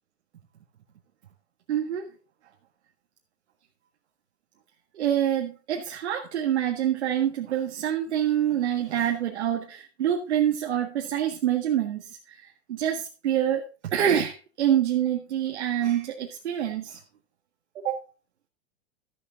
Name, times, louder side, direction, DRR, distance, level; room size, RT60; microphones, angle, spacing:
voice 1, 1.7-2.1 4.9-17.0 17.8-18.0, right 10 dB, 85° right, 1.8 m, -26 dB
13.0 x 8.3 x 3.7 m
hypercardioid pair, 135°, 33 cm